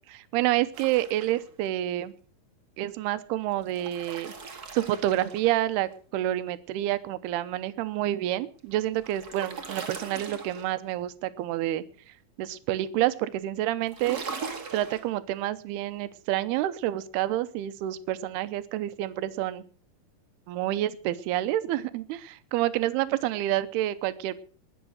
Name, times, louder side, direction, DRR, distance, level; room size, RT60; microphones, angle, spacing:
voice 1, 0.1-2.1 2.8-11.8 12.4-14.2 14.7-19.6 20.5-24.4, right 14 dB, 85° right, 13 dB, 2.8 m, -28 dB
sound 1, 0.7-1.7 3.5-5.9 8.6-10.9 13.8-15.1, right 5 dB, 40° right, 1.4 m, -40 dB
21.5 x 7.3 x 6.4 m, 0.42 s
omnidirectional pair, 4.5 m